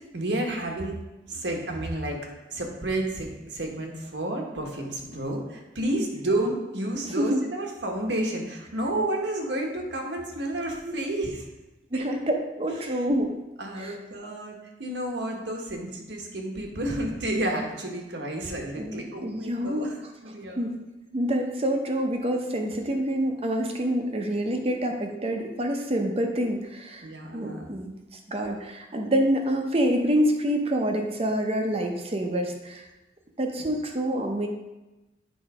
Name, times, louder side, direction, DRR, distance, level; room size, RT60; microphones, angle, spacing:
voice 1, 0.1-1.0 1.3-2.2 2.5-11.4 12.8-13.0 13.6-20.0 20.2-20.6 27.0-27.7 33.6-33.7, right 1 dB, 75° right, 1 dB, 1.3 m, -31 dB
voice 2, 7.0-7.4 10.8-10.9 11.9-13.4 13.7-14.0 18.8-19.9 20.6-20.8 21.1-27.1 27.3-27.9 28.3-32.9 33.4-34.5, equal, 35° right, 3 dB, 0.7 m, -27 dB
8.2 x 3.9 x 4.9 m, 1.1 s
head